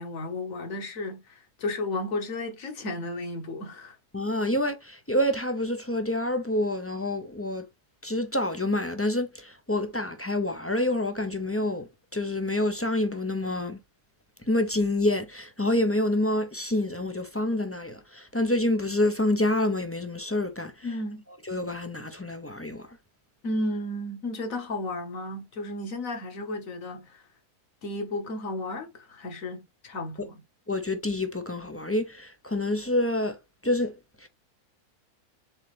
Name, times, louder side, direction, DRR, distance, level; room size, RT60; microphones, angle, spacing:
voice 1, 0.0-4.0 20.8-21.2 23.4-27.2 27.8-30.4, left 2 dB, 60° left, 1.9 m, -33 dB
voice 2, 4.1-7.6 8.0-13.8 14.5-20.7 21.5-22.8 30.7-33.3 33.6-33.9 34.2-34.3, left 1 dB, 15° left, 0.4 m, -27 dB
7.3 x 3.9 x 3.4 m
omnidirectional pair, 1.7 m